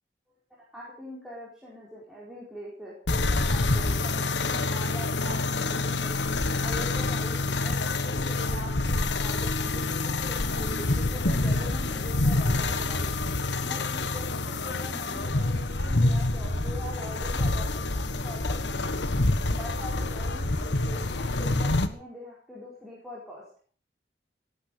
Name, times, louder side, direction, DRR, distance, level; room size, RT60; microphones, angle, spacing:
voice 1, 0.7-6.1 6.6-13.1 13.6-18.9 19.5-23.4, left 1 dB, ahead, -5 dB, 4.7 m, -42 dB
sound 1, 3.1-21.9, left 2 dB, 85° left, 1.5 m, -27 dB
18.5 x 9.8 x 6.7 m, 0.43 s
head